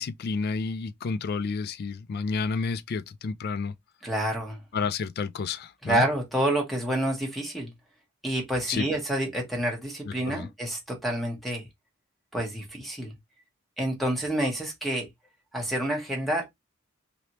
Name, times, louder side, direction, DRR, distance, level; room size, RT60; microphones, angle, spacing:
voice 1, 0.0-3.7 4.7-6.0 8.7-8.9 10.1-10.5, left 4 dB, 50° left, 0.3 m, -30 dB
voice 2, 4.0-4.6 5.8-7.7 8.2-11.6 12.3-13.1 13.8-15.1 15.5-16.5, right 1 dB, ahead, 0.9 m, -28 dB
3.2 x 2.7 x 2.9 m
head